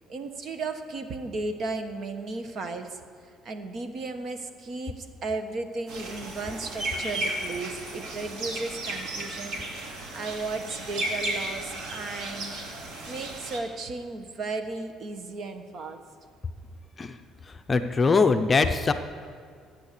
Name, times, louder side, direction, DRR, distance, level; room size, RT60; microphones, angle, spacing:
voice 1, 0.1-3.0 3.4-9.6 10.1-12.5 13.1-16.0, right 3 dB, 45° right, 7 dB, 1.2 m, -35 dB
sound 1, 5.9-13.6, right 1 dB, 65° right, 2.5 m, -34 dB
voice 2, 17.7-18.9, left 4 dB, 25° left, 7 dB, 0.7 m, -21 dB
15.5 x 9.0 x 6.8 m, 2.1 s
cardioid pair, 125°, 0 cm